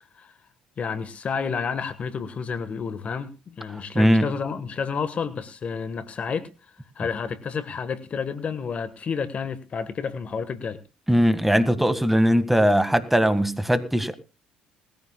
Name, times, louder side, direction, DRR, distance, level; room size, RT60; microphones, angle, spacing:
voice 1, 0.8-6.5 7.0-10.8, left 6 dB, 45° left, 1.3 m, -30 dB
voice 2, 4.0-4.3 11.1-14.1, equal, 5° right, 1.7 m, -20 dB
20.5 x 14.5 x 2.3 m
hypercardioid pair, 65°, 3 cm